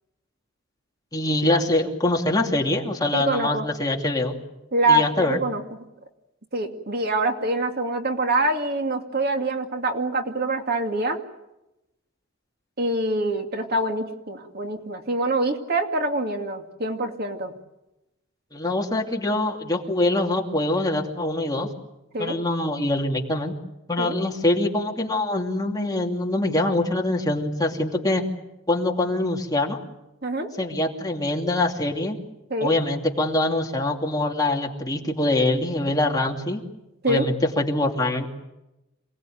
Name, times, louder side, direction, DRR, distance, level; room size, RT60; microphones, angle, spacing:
voice 1, 1.1-4.3 4.9-5.4 18.5-21.7 22.2-23.5 23.9-28.2 28.7-29.8 30.6-32.2 32.6-36.6 37.1-38.3, left 2 dB, 20° left, 1 dB, 2.7 m, -24 dB
voice 2, 3.1-3.7 4.7-5.6 6.5-11.2 12.8-17.5 22.1-22.4 24.0-24.2 30.2-30.7 32.5-32.7 37.0-37.3, right 2 dB, 50° right, 4 dB, 2.4 m, -25 dB
27.5 x 19.0 x 9.3 m, 0.92 s
head